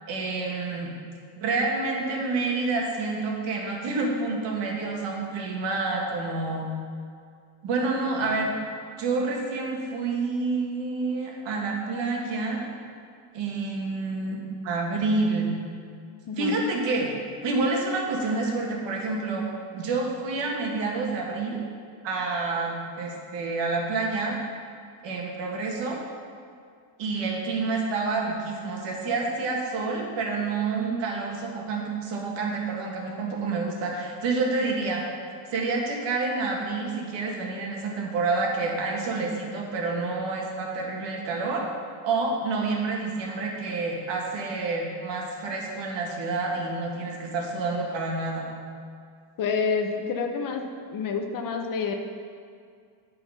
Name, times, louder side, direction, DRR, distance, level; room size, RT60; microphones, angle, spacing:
voice 1, 0.1-0.9 1.4-6.7 7.6-8.5 9.0-12.6 13.3-15.5 16.4-17.1 17.4-19.5 19.7-21.6 22.0-24.4 25.0-26.0 27.0-35.0 35.5-41.7 42.0-48.4, right 3 dB, 60° right, -1 dB, 1.8 m, -28 dB
voice 2, 49.4-50.6 50.9-51.9, left 5 dB, 40° left, 4 dB, 0.8 m, -28 dB
12.5 x 4.6 x 5.6 m, 2.2 s
cardioid pair, 150°, 49 cm